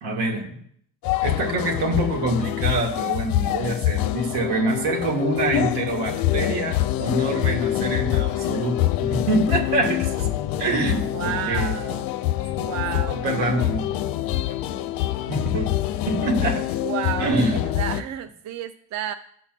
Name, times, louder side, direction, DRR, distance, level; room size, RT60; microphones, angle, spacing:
voice 1, 0.0-0.5 1.2-10.3 10.6-11.7 13.1-13.9 15.3-15.7 16.1-16.7 17.2-17.6, right 2 dB, 70° right, 1 dB, 1.7 m, -25 dB
sound 1, 1.0-18.0, left 13 dB, 55° left, 0.5 m, -25 dB
voice 2, 11.1-12.1 12.5-13.2 16.8-19.1, right 10 dB, 40° right, 10 dB, 0.5 m, -31 dB
11.5 x 5.7 x 2.2 m, 0.65 s
hypercardioid pair, 55°, 44 cm